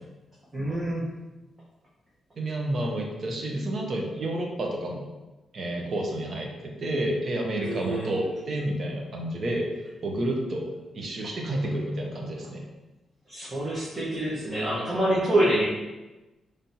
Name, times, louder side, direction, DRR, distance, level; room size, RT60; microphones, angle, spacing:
voice 1, 0.5-1.0 7.6-8.1 13.3-15.7, right 1 dB, 20° right, -9 dB, 1.1 m, -26 dB
voice 2, 2.4-5.1 5.5-9.7 10.0-10.7 10.9-12.6, right 1 dB, 45° right, 0 dB, 0.9 m, -30 dB
5.4 x 3.3 x 2.8 m, 1.1 s
cardioid pair, 140°, 0 cm